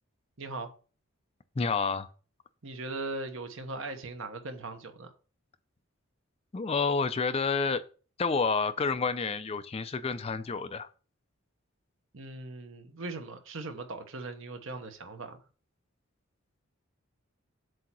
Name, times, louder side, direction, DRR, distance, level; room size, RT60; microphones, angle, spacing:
voice 1, 0.4-0.7 2.6-5.1 12.1-15.4, right 2 dB, 65° right, 1.1 m, -39 dB
voice 2, 1.6-2.1 6.5-7.8 8.2-10.9, left 4 dB, 30° left, 0.4 m, -29 dB
7.7 x 2.8 x 6.0 m
head